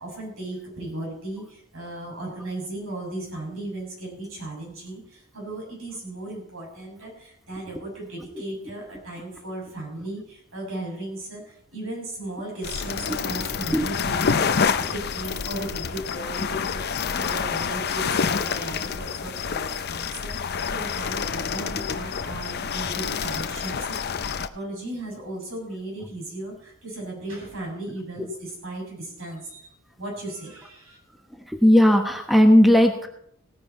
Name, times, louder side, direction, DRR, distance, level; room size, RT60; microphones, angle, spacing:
voice 1, 0.0-24.3 24.5-29.7 30.0-31.0, right 2 dB, 80° right, -2 dB, 7.4 m, -36 dB
sound 1, 12.6-24.5, left 6 dB, 50° left, 0.6 m, -28 dB
voice 2, 31.5-33.1, left 1 dB, ahead, 3 dB, 1.2 m, -16 dB
17.5 x 9.6 x 4.4 m, 0.69 s
head